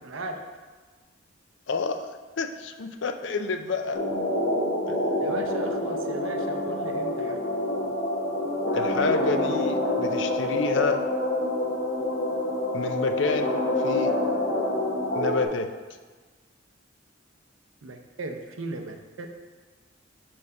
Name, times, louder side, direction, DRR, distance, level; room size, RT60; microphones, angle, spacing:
voice 1, 0.0-0.5 5.2-7.4 17.8-19.3, right 2 dB, 85° right, 4 dB, 0.7 m, -36 dB
voice 2, 1.7-2.1 2.4-4.0 4.9-5.0 8.7-11.0 12.7-14.2 15.1-15.7, left 4 dB, 65° left, 7 dB, 0.4 m, -29 dB
sound 1, 3.9-15.5, left 1 dB, 45° left, 1.1 m, -27 dB
4.8 x 4.4 x 5.4 m, 1.4 s
head